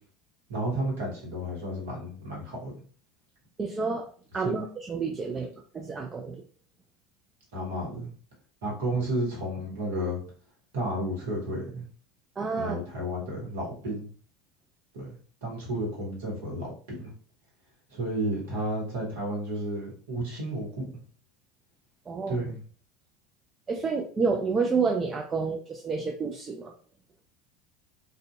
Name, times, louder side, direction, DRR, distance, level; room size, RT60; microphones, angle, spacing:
voice 1, 0.5-2.7 4.4-4.5 7.5-8.1 8.6-10.2 10.7-11.8 12.6-14.1 14.9-15.1 15.4-17.1 17.9-20.9 22.3-22.6, right 1 dB, 70° right, -3 dB, 1.0 m, -32 dB
voice 2, 3.6-4.1 4.3-6.4 12.4-12.8 22.1-22.4 23.7-26.7, right 4 dB, 25° right, 1 dB, 0.3 m, -29 dB
2.6 x 2.1 x 2.3 m, 0.43 s
figure-of-eight pair, 70°, 0 cm